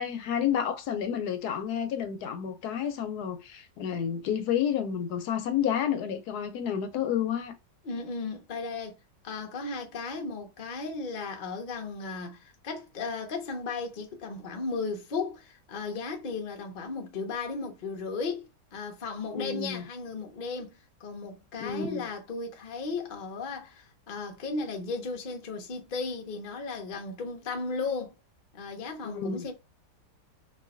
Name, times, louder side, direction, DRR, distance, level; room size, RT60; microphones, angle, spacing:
voice 1, 0.0-7.5 19.3-19.9 21.6-22.1 29.0-29.4, left 8 dB, 75° left, 1.1 m, -30 dB
voice 2, 7.8-9.0 9.2-28.1 28.5-29.5, left 4 dB, 45° left, 0.6 m, -35 dB
3.1 x 2.6 x 2.4 m
omnidirectional pair, 1.8 m